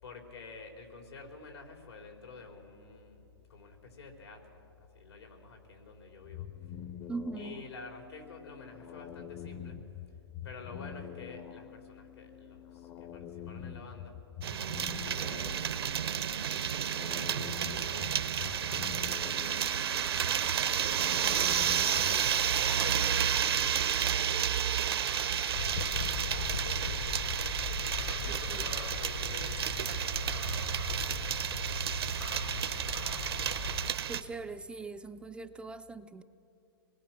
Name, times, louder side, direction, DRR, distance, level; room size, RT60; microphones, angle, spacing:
voice 1, 0.0-6.5 7.4-9.9 10.4-14.2 15.1-21.3 21.6-25.8 26.2-30.5 30.8-33.4, left 4 dB, 85° left, 2 dB, 4.5 m, -49 dB
sound 1, 6.2-22.3, left 9 dB, 30° left, 0.7 m, -46 dB
voice 2, 7.1-7.6 28.3-28.7 34.1-36.2, right 3 dB, 5° right, 9 dB, 0.4 m, -41 dB
sound 2, 14.4-34.2, right 9 dB, 75° right, 0.9 m, -31 dB
sound 3, 25.5-33.9, left 6 dB, 60° left, 1.6 m, -39 dB
26.5 x 20.5 x 6.2 m, 2.7 s
hypercardioid pair, 130°, 13 cm